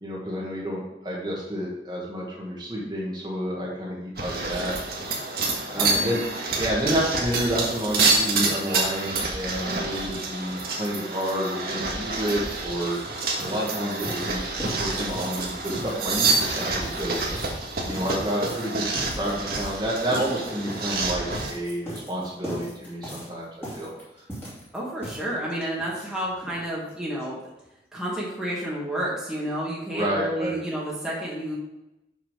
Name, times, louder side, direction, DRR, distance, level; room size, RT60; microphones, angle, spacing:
voice 1, 0.0-4.8 5.7-6.2 6.5-13.0 13.4-14.4 14.8-17.2 17.8-23.5 23.7-23.9 29.9-30.5, equal, 25° right, -4 dB, 1.6 m, -29 dB
sound 1, 4.2-21.5, right 3 dB, 55° right, 1.6 m, -28 dB
voice 2, 5.7-6.2 24.7-27.4 27.9-31.6, right 1 dB, 5° right, -6 dB, 1.7 m, -30 dB
sound 2, 11.9-12.0 12.2-26.6 26.9-27.0 27.2-27.3 27.6-27.7, equal, 15° left, 2.6 m, -39 dB
6.6 x 6.2 x 5.1 m, 0.92 s
head